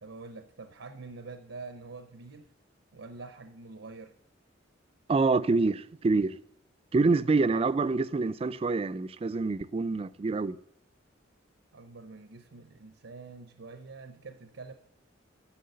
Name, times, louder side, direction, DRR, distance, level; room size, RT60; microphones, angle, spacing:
voice 1, 0.0-2.5 2.9-4.1 11.7-14.7, right 3 dB, 85° right, 0.8 m, -46 dB
voice 2, 5.1-6.4 6.9-10.6, right 3 dB, 30° right, 0.3 m, -26 dB
10.5 x 7.1 x 6.7 m
head